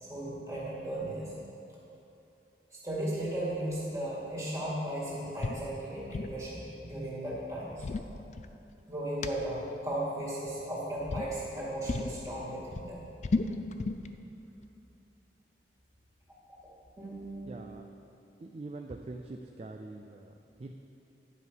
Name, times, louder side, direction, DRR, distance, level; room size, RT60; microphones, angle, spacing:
voice 1, 0.0-1.3 2.7-7.8 8.9-13.0 17.0-17.6, right 1 dB, 20° right, -7 dB, 2.2 m, -36 dB
sound 1, 5.4-5.6 5.9-6.4 7.5-8.8 9.2-9.3 10.4-10.7 11.1-11.3 11.9-12.2 12.5-14.1, left 3 dB, 40° left, 0.4 m, -33 dB
voice 2, 17.4-17.9 18.4-20.7, right 2 dB, 35° right, 4 dB, 0.3 m, -44 dB
10.5 x 5.4 x 6.2 m, 2.7 s
head